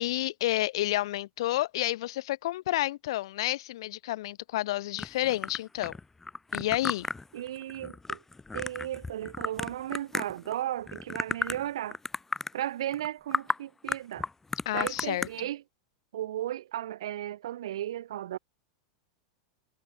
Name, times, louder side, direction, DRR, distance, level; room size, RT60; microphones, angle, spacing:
voice 1, 0.0-5.9 6.5-7.1 14.6-15.3, left 16 dB, 65° left, 1.7 m, -30 dB
sound 1, 5.0-10.5 10.9-11.7 11.9-12.5 12.9-13.1 13.3-13.6 13.9-15.3, left 3 dB, 10° left, 4.5 m, -33 dB
voice 2, 7.3-8.2 8.5-12.0 12.5-14.3 14.7-15.6 16.1-18.4, right 12 dB, 70° right, 3.7 m, -35 dB
hypercardioid pair, 90°, 3 cm